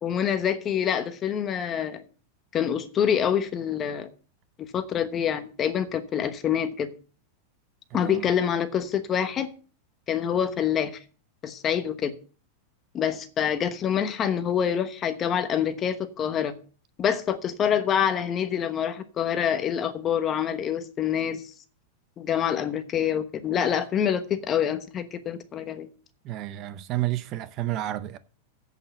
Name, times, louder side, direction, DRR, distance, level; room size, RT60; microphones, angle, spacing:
voice 1, 0.0-2.0 2.5-4.1 4.6-6.9 7.9-9.5 10.1-10.9 11.4-12.1 12.9-16.5 17.0-21.4 22.2-25.9, left 8 dB, 25° left, 1.1 m, -26 dB
voice 2, 7.9-8.3 26.2-28.2, right 15 dB, 35° right, 0.6 m, -31 dB
8.2 x 7.2 x 7.4 m
supercardioid pair, 155°, 0 cm